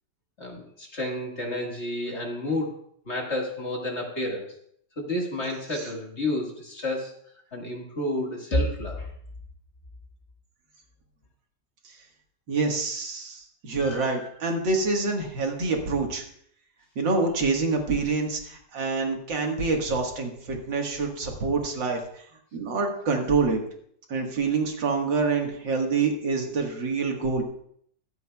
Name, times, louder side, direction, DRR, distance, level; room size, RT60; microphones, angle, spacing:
voice 1, 0.4-2.8 3.1-4.5 5.0-7.1 7.5-9.1 13.8-14.3, left 1 dB, 40° left, 0 dB, 2.1 m, -30 dB
voice 2, 12.5-16.2 17.0-22.3 22.5-23.6 24.1-27.4, right 4 dB, 90° right, 2 dB, 2.4 m, -26 dB
23.0 x 8.0 x 2.3 m, 0.66 s
omnidirectional pair, 1.9 m